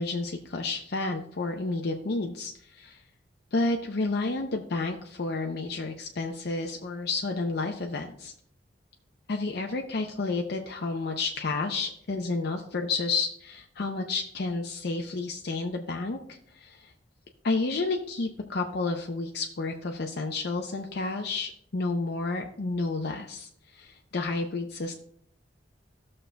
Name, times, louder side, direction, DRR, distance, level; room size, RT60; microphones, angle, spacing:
voice 1, 0.0-3.0 3.5-8.3 9.3-16.2 16.5-16.9 17.4-24.9, left 3 dB, 60° left, 2 dB, 0.6 m, -31 dB
14.0 x 6.5 x 2.2 m, 0.67 s
head